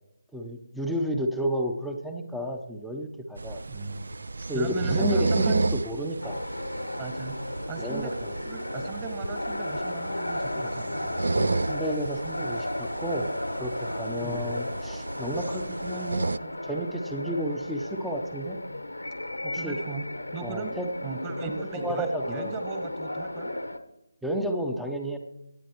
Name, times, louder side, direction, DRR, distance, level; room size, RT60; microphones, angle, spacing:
voice 1, 0.3-3.6 4.5-6.4 7.8-8.3 11.3-13.3 13.6-18.6 19.4-19.8 20.4-20.9 21.4-22.5 24.2-25.2, equal, ahead, 3 dB, 0.7 m, -32 dB
sound 1, 3.4-16.4, right 3 dB, 60° right, 0.3 m, -32 dB
voice 2, 3.7-4.1 4.5-5.8 7.0-7.4 7.7-8.1 8.4-11.1 14.2-14.5 19.5-20.0 20.3-23.5, right 4 dB, 15° right, 6 dB, 1.4 m, -37 dB
sound 2, 6.2-23.8, left 1 dB, 85° left, 1.2 m, -34 dB
24.0 x 9.1 x 3.0 m, 0.92 s
figure-of-eight pair, 155°, 0 cm